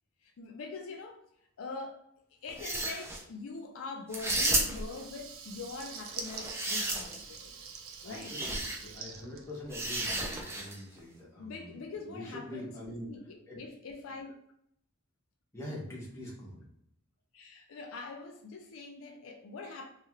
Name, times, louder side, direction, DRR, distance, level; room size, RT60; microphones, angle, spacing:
voice 1, 0.2-1.2 1.6-2.1 2.4-7.5 8.0-8.4 11.4-14.4 17.3-19.9, left 4 dB, 70° left, 3 dB, 0.4 m, -43 dB
sound 1, 2.5-3.2 4.1-5.0 6.1-7.3 8.2-8.8 9.7-10.8, right 2 dB, 10° right, 0.3 m, -32 dB
Water tap faucet / Liquid, 4.7-10.2, right 6 dB, 75° right, 0.4 m, -46 dB
voice 2, 8.0-11.8 12.1-13.1 13.5-13.6 15.5-16.6, left 1 dB, 10° left, -6 dB, 0.9 m, -44 dB
2.9 x 2.4 x 2.8 m, 0.74 s
head